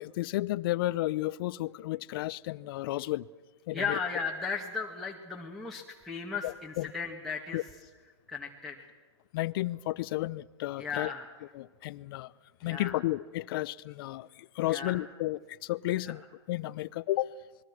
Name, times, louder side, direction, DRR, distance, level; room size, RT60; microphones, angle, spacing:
voice 1, 0.0-3.3 3.7-4.0 6.4-6.9 7.5-7.6 9.3-11.1 11.5-12.3 12.6-16.2 16.5-17.4, left 16 dB, 55° left, 0.7 m, -32 dB
voice 2, 3.7-7.6 8.3-8.9 10.8-11.3 12.6-12.9 14.7-15.0 16.0-16.1, left 5 dB, ahead, 2.1 m, -36 dB
28.0 x 21.5 x 6.3 m
hypercardioid pair, 135°, 15 cm